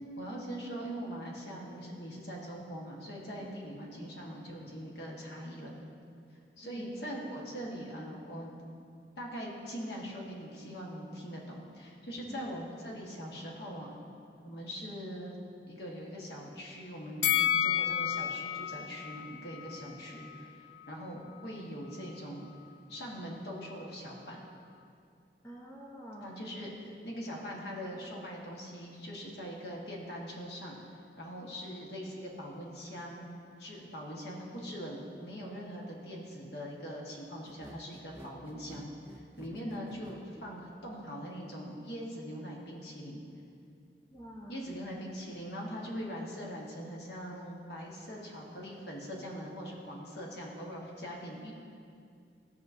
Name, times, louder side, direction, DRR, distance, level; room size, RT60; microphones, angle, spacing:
voice 1, 0.2-5.8 6.6-8.6 9.2-14.0 14.4-15.4 15.7-22.5 22.9-24.4 26.2-33.3 33.6-43.2 44.5-51.5, equal, 65° left, -3 dB, 1.4 m, -42 dB
Bell, 17.2-20.4 20.8-20.9, left 10 dB, 85° left, 0.5 m, -31 dB
voice 2, 25.4-26.4 39.5-39.7 44.1-44.6, equal, 15° left, -3 dB, 0.9 m, -47 dB
sound 1, 37.4-40.2, right 1 dB, 10° right, 0.5 m, -50 dB
14.5 x 5.7 x 2.7 m, 2.4 s
head